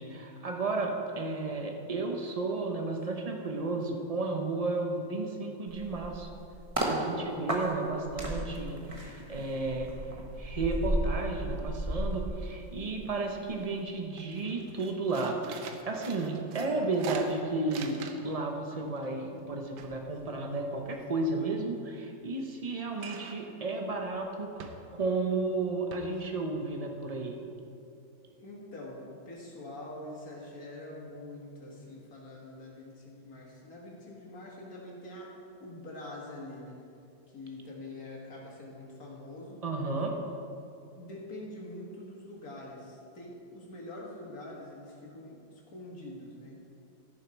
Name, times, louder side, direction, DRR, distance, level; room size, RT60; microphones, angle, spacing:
voice 1, 0.0-6.3 6.8-9.9 10.4-27.4 39.6-40.2, right 3 dB, 60° right, 2 dB, 0.3 m, -33 dB
sound 1, 5.7-7.0 7.5-13.1 13.4-13.6, right 1 dB, 20° right, 1.1 m, -34 dB
sound 2, 11.6-12.1 12.4-13.2 13.6-13.8 14.1-18.4 18.7-21.1 23.0-23.5 23.9-24.1 24.6-25.1 25.5-25.6 25.9-26.0, right 5 dB, 85° right, 1.5 m, -45 dB
voice 2, 28.2-35.3 35.6-36.8 37.3-39.6 41.0-46.7, left 1 dB, 50° left, -3 dB, 2.3 m, -45 dB
15.0 x 7.0 x 4.5 m, 2.6 s
omnidirectional pair, 2.0 m